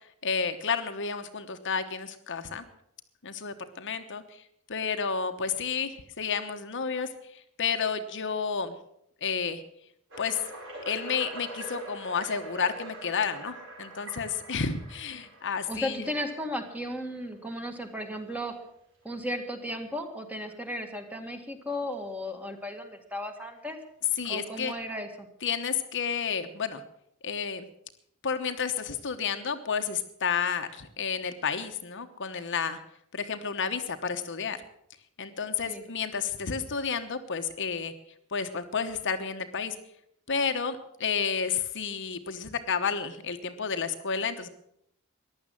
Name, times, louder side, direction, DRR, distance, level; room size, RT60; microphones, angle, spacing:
voice 1, 0.2-2.6 3.2-4.2 4.7-7.1 7.6-8.7 9.2-9.6 10.2-10.4 10.9-16.1 24.2-24.7 25.4-26.8 27.2-27.7 28.2-32.8 33.1-34.6 35.2-37.9 38.3-39.7 40.3-44.5, left 6 dB, 55° left, 7 dB, 1.1 m, -31 dB
sound 1, 10.1-17.0 17.6-17.8 18.4-18.5 19.0-19.1 20.5-20.6 23.4-23.5 24.2-25.0, right 1 dB, 60° right, 5.3 m, -44 dB
voice 2, 15.7-18.5 19.0-23.8 24.3-25.3 35.6-35.8, equal, 5° right, 5 dB, 1.8 m, -35 dB
15.0 x 11.0 x 7.6 m, 0.74 s
head